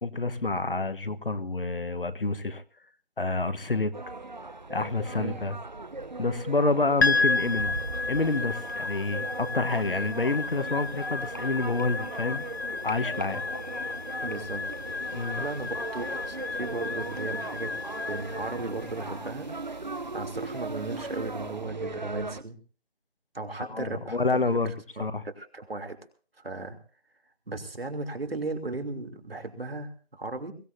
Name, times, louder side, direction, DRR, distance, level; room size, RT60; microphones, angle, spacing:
voice 1, 0.0-2.6 3.2-4.0 4.7-5.6 6.2-7.8 8.1-12.4 12.8-13.4 13.8-13.9 15.1-15.4 23.6-24.7 25.0-25.2, left 3 dB, 55° left, 11 dB, 1.2 m, -28 dB
sound 1, 3.9-22.4, right 3 dB, 45° right, 0.8 m, -38 dB
sound 2, 7.0-21.4, left 4 dB, 75° left, 0.8 m, -33 dB
sound 3, 10.0-15.0 15.6-15.9 16.1-16.2, left 2 dB, 20° left, 1.1 m, -46 dB
voice 2, 14.2-14.9 15.4-17.8 18.1-19.5 20.1-22.6 23.3-26.0 26.4-26.8 27.5-30.5, right 2 dB, 65° right, 5 dB, 3.0 m, -36 dB
22.5 x 17.0 x 2.7 m, 0.38 s
figure-of-eight pair, 165°, 32 cm